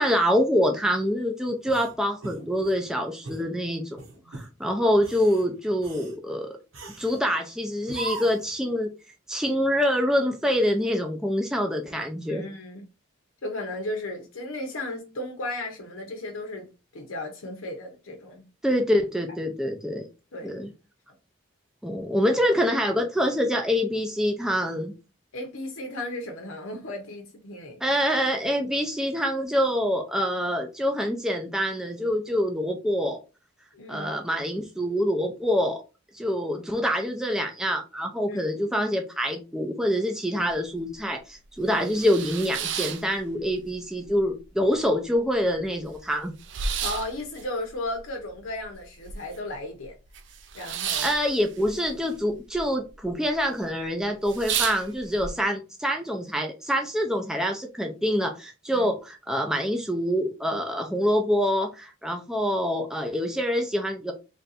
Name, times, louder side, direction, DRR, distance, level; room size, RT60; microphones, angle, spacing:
voice 1, 0.0-4.0 4.3-6.6 7.0-8.9 9.3-12.4 18.6-20.1 20.4-20.7 21.8-24.9 27.8-33.2 33.9-35.8 36.1-46.3 51.0-64.1, equal, 5° right, 0.5 m, -26 dB
sound 1, 1.6-2.8 3.2-3.5 4.0-4.5 4.9-5.4 5.8-6.2 6.7-7.2 7.9-8.5, right 3 dB, 80° right, 1.2 m, -39 dB
voice 2, 12.3-12.9 13.4-18.4 20.3-20.6 25.3-27.8 33.7-34.1 38.3-38.4 41.6-41.8 46.8-49.9 50.5-51.1 58.7-58.9, left 1 dB, 85° left, 0.8 m, -35 dB
sound 2, 40.5-40.6 41.0-41.1 41.5-43.7 44.0-44.8 45.1-45.2 45.4-49.6 49.8-52.6 52.9-53.4 53.8-53.9 54.2-55.3, right 7 dB, 60° right, 0.5 m, -33 dB
3.3 x 2.6 x 4.0 m
head